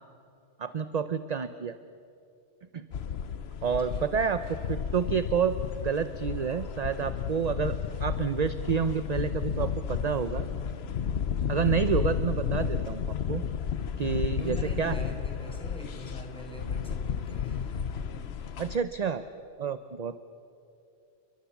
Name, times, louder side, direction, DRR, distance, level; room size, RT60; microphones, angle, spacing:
voice 1, 0.6-1.8 2.7-2.9 3.6-7.8 8.0-10.4 11.5-13.0 13.3-13.4 14.0-15.0 18.6-19.2 19.6-20.2, right 6 dB, 40° right, 12 dB, 0.7 m, -29 dB
sound 1, 2.9-18.8, left 7 dB, 65° left, 1.0 m, -32 dB
voice 2, 3.9-4.3 14.0-18.6, equal, 5° left, 1 dB, 4.4 m, -44 dB
29.5 x 23.5 x 7.1 m, 2.6 s
omnidirectional pair, 1.2 m